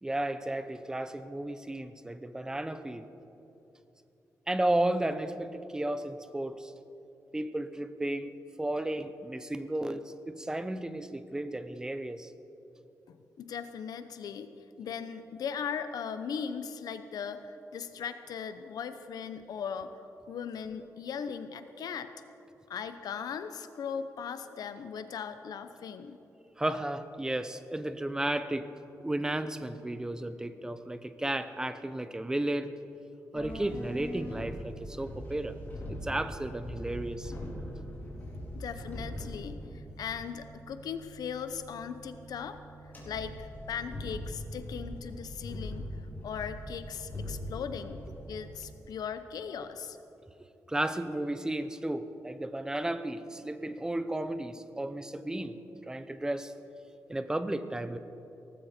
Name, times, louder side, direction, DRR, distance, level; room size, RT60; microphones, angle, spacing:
voice 1, 0.0-3.1 4.5-6.7 7.3-12.3 26.6-28.7 29.0-32.7 33.3-35.6 35.9-37.3 50.7-55.6 55.9-56.5 57.1-58.0, right 1 dB, 10° right, 11 dB, 0.7 m, -33 dB
voice 2, 13.1-14.5 14.8-19.9 20.3-22.1 22.7-26.2 38.5-42.6 43.0-45.9 46.2-50.0, left 7 dB, 85° left, 10 dB, 0.9 m, -38 dB
sound 1, 33.3-48.6, equal, 30° left, 4.2 m, -42 dB
18.5 x 15.0 x 4.4 m, 2.9 s
wide cardioid pair, 145°, 6 cm